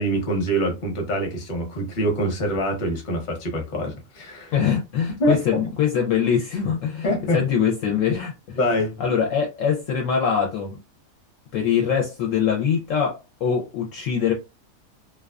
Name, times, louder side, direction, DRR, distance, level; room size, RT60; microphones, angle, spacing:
voice 1, 0.0-4.5 5.2-5.4 7.0-7.4 8.6-9.0, equal, 40° left, 0.8 m, -24 dB
voice 2, 4.5-7.1 7.3-8.6 9.0-10.8 11.5-14.3, left 7 dB, 65° left, 0.9 m, -23 dB
2.4 x 2.2 x 2.3 m
omnidirectional pair, 1.6 m